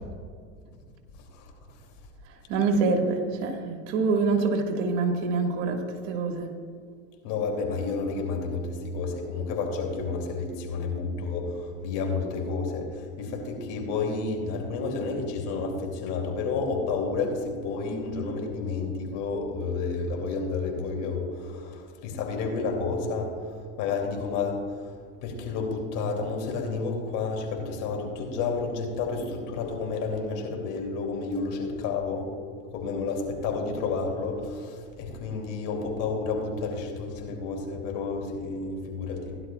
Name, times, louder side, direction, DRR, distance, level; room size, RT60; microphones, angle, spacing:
voice 1, 2.5-6.5, right 4 dB, 60° right, 3 dB, 1.9 m, -25 dB
voice 2, 7.2-23.3 23.8-24.9 25.2-32.3 32.7-39.4, left 4 dB, 55° left, 2 dB, 2.8 m, -30 dB
16.5 x 11.0 x 2.3 m, 2.2 s
hypercardioid pair, 105°, 37 cm